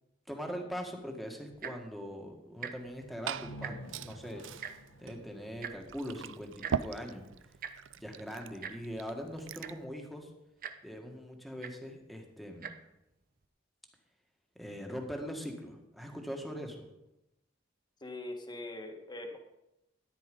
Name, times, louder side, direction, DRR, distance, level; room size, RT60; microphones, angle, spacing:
voice 1, 0.3-4.7 5.0-7.2 8.0-10.3 10.8-12.8 14.6-16.9, equal, ahead, 2 dB, 1.9 m, -42 dB
Tick-tock, 1.5-1.9 2.5-2.7 3.0-3.2 3.5-4.0 4.6-4.7 5.6-5.7 6.6-6.8 7.6-7.7 8.6-8.7 9.3-9.4 9.6-9.9 10.6-10.7 11.6-11.7 12.5-12.7 13.4-13.5, right 7 dB, 50° right, 0.9 m, -41 dB
Glass / Fill (with liquid), 2.8-9.8, right 7 dB, 80° right, 0.5 m, -42 dB
sound 1, 3.2-6.9, equal, 80° left, 1.0 m, -50 dB
voice 2, 18.0-19.4, left 2 dB, 25° left, 4 dB, 1.6 m, -42 dB
13.5 x 10.0 x 5.4 m, 0.90 s
head